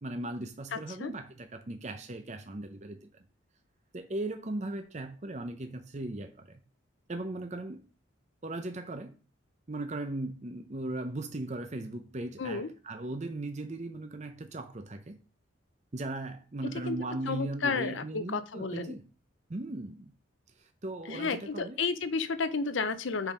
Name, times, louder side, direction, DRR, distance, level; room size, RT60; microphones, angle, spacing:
voice 1, 0.0-3.1 3.9-6.6 7.1-7.8 8.4-9.1 9.7-15.2 15.9-19.0 19.5-20.1 20.6-21.8, right 2 dB, 35° right, 0.6 m, -38 dB
voice 2, 0.7-1.1 12.4-12.7 16.9-17.0 17.2-19.0 21.1-23.3, left 4 dB, 70° left, 0.6 m, -32 dB
7.1 x 4.0 x 5.1 m
head